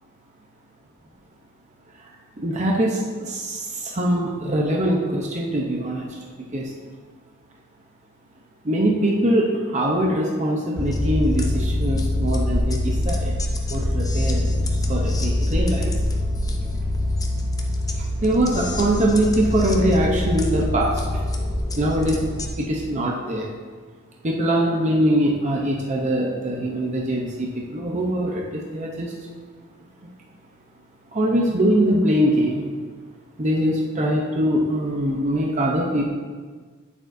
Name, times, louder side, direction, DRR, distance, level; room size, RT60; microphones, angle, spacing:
voice 1, 2.4-6.1 6.5-6.7 8.6-13.3 13.7-14.5 14.9-15.9 18.2-21.2 21.8-22.2 22.6-23.5 24.2-29.1 31.1-32.7 33.4-36.1, right 1 dB, 35° right, -2 dB, 0.7 m, -22 dB
sound 1, 10.8-22.5, left 1 dB, 15° left, 0.6 m, -24 dB
8.8 x 8.0 x 2.6 m, 1.5 s
head